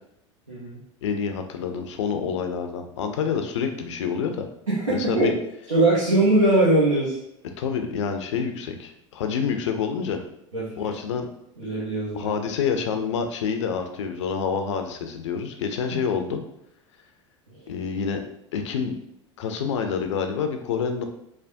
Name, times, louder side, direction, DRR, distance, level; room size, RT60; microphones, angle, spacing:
voice 1, 0.5-0.8 4.7-5.3 5.7-7.2 10.5-10.7 11.6-12.3, right 2 dB, 85° right, -9 dB, 0.8 m, -21 dB
voice 2, 1.0-4.4 4.9-5.3 7.6-10.2 10.8-11.3 12.1-16.4 17.7-18.2 18.5-18.9 19.4-21.0, left 6 dB, 65° left, 5 dB, 0.4 m, -27 dB
3.3 x 2.1 x 2.6 m, 0.78 s
figure-of-eight pair, 75°, 16 cm